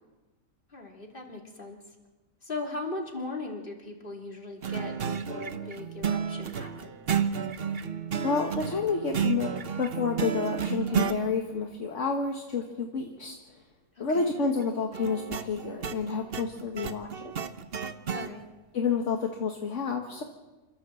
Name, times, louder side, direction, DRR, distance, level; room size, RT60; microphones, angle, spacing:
voice 1, 0.7-1.8 2.4-7.0 14.0-14.4 18.1-18.4, left 2 dB, 40° left, 1 dB, 3.4 m, -39 dB
sound 1, 4.6-11.2 14.9-18.3, right 7 dB, 45° right, 1.1 m, -31 dB
voice 2, 8.2-13.6 14.0-17.3 18.7-20.2, left 5 dB, 60° left, 2 dB, 1.9 m, -30 dB
27.5 x 13.5 x 7.7 m, 1.1 s
omnidirectional pair, 1.5 m